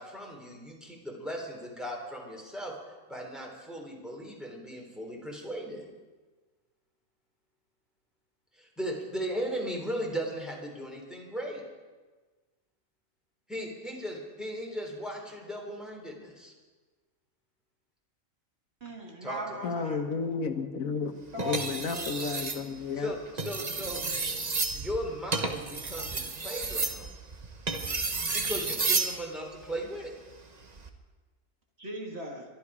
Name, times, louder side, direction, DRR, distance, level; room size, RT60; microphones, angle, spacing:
voice 1, 0.0-5.8 8.5-11.6 13.5-16.5 19.2-19.9 22.9-24.0 24.7-27.1 28.3-30.1, equal, ahead, -1 dB, 3.4 m, -37 dB
voice 2, 18.8-20.0 21.1-22.1 31.8-32.5, right 1 dB, 50° right, 1 dB, 2.2 m, -39 dB
voice 3, 19.6-21.1 21.4-23.1, left 5 dB, 90° left, 8 dB, 1.5 m, -32 dB
sound 1, 21.4-22.6 23.3-29.2 30.6-30.9, right 3 dB, 35° right, 1.1 m, -31 dB
23.0 x 12.0 x 4.9 m, 1.3 s
omnidirectional pair, 1.4 m